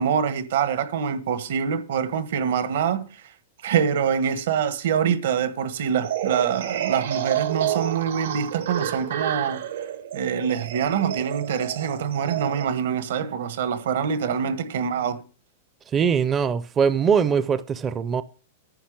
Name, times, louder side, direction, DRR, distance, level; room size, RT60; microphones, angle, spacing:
voice 1, 0.0-3.1 3.6-15.2, right 7 dB, 70° right, 1.4 m, -25 dB
sound 1, 6.0-12.6, right 10 dB, 90° right, 1.8 m, -30 dB
voice 2, 15.9-18.2, right 6 dB, 20° right, 0.4 m, -22 dB
10.0 x 6.0 x 8.8 m
supercardioid pair, 160°, 0 cm